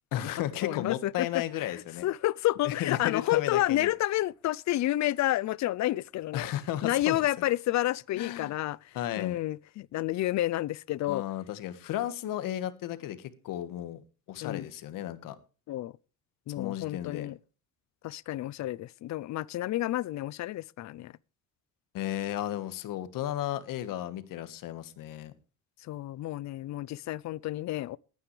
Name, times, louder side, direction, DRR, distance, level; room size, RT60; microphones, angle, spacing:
voice 1, 0.1-2.0 2.6-3.9 6.3-7.2 8.1-8.5 8.9-9.4 11.1-14.0 14.3-15.4 16.6-17.3 21.9-25.3, left 12 dB, 85° left, 1.6 m, -34 dB
voice 2, 0.6-1.3 1.7-6.5 6.8-8.8 9.2-11.3 14.4-14.7 15.7-15.9 16.5-17.4 18.0-21.1 25.9-28.0, left 15 dB, 60° left, 0.5 m, -30 dB
21.0 x 9.4 x 3.2 m
cardioid pair, 135°, 32 cm